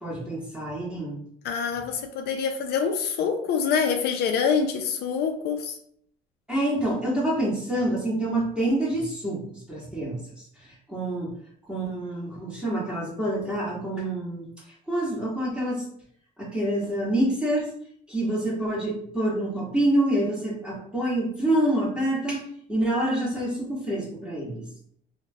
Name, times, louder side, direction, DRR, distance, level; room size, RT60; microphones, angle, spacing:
voice 1, 0.0-1.2 6.5-9.4 9.7-10.2 10.9-11.3 11.7-14.4 14.9-15.8 16.4-17.7 18.1-22.4 22.7-24.6, right 1 dB, 5° right, -6 dB, 1.2 m, -26 dB
voice 2, 1.4-5.8, left 6 dB, 70° left, 5 dB, 0.4 m, -26 dB
2.9 x 2.1 x 2.7 m, 0.66 s
cardioid pair, 110°, 17 cm